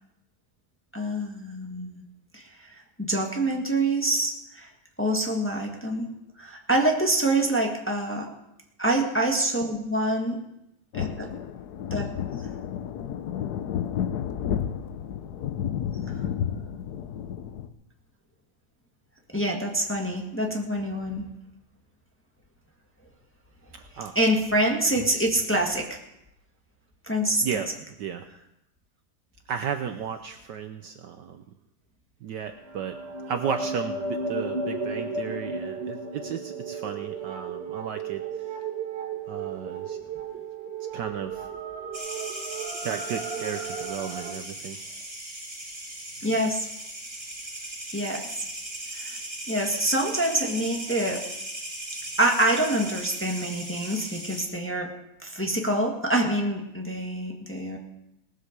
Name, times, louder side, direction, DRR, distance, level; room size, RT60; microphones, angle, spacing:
voice 1, 0.9-2.0 2.3-4.7 5.0-6.1 6.4-8.3 8.8-10.4 11.0-11.3 11.9-12.1 19.3-21.3 24.1-26.0 27.1-27.4 46.2-46.6 47.9-48.2 49.0-49.1 49.5-51.2 52.2-54.9 55.2-57.8, right 1 dB, 5° left, 1 dB, 1.4 m, -26 dB
sound 1, 10.9-17.7, left 9 dB, 60° left, 1.1 m, -31 dB
voice 2, 23.7-24.1 25.0-25.3 27.4-28.3 29.5-31.4 32.2-33.0 33.3-38.2 39.3-40.0 40.9-41.5 42.8-44.8, right 7 dB, 65° right, 7 dB, 1.2 m, -34 dB
sound 2, 32.5-44.3, right 4 dB, 30° right, 2.1 m, -34 dB
sound 3, 41.9-54.5, right 1 dB, 15° right, 3.1 m, -38 dB
18.5 x 8.0 x 6.6 m, 0.85 s
omnidirectional pair, 2.3 m